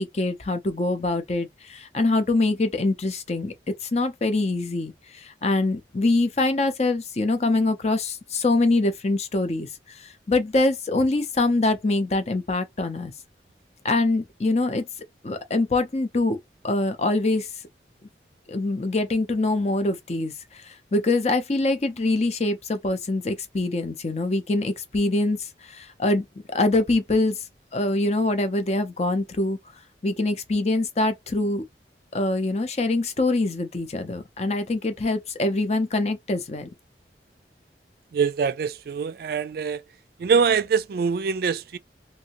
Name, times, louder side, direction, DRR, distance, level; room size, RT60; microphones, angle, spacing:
voice 1, 0.0-3.5 3.9-13.1 13.8-14.9 15.2-16.4 16.6-17.5 18.5-27.4 27.7-29.6 30.0-31.6 32.1-36.7, left 2 dB, 35° left, 0.6 m, -24 dB
voice 2, 38.1-39.8 40.2-41.8, right 6 dB, 55° right, 0.3 m, -24 dB
2.8 x 2.7 x 2.9 m
head